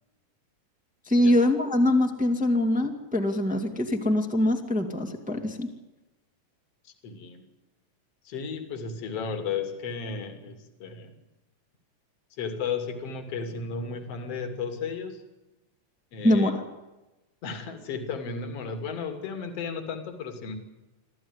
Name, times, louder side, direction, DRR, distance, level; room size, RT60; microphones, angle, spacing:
voice 1, 1.1-5.7 16.2-16.6, left 1 dB, 5° right, 3 dB, 2.0 m, -23 dB
voice 2, 6.9-7.5 8.3-11.2 12.4-15.2 16.1-16.5 17.4-20.5, left 5 dB, 50° left, 7 dB, 3.6 m, -34 dB
25.0 x 15.0 x 9.9 m, 1.0 s
omnidirectional pair, 3.9 m